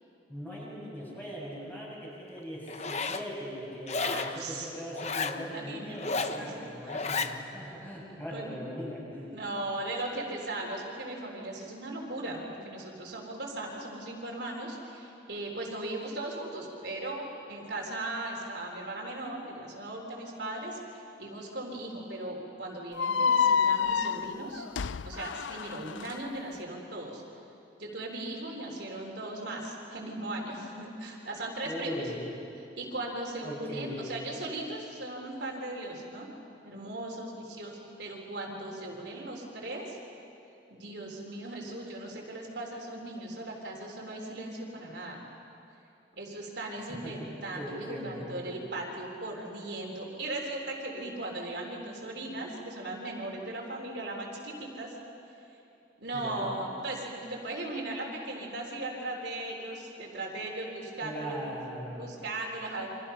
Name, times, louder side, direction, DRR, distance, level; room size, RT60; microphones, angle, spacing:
voice 1, 0.3-9.3 31.6-32.2 33.4-34.0 47.0-47.3 47.5-48.6 56.1-56.5 61.0-62.0, equal, 10° left, -6 dB, 7.4 m, -39 dB
Zipper (clothing), 2.7-3.3 3.9-4.4 4.9-5.4 5.9-6.4 6.9-7.3, left 4 dB, 35° left, 0.9 m, -32 dB
voice 2, 4.0-4.7 5.5-6.0 6.3-6.6 8.3-8.6 9.2-24.7 25.0-27.2 27.8-32.0 32.6-36.3 36.6-40.0 40.7-45.2 46.2-54.9 55.3-55.4 56.0-61.4 62.0-62.9, right 2 dB, 65° right, -1 dB, 3.7 m, -38 dB
sound 1, 23.0-26.1, left 6 dB, 85° left, 0.5 m, -28 dB
29.0 x 25.5 x 5.7 m, 2.8 s
head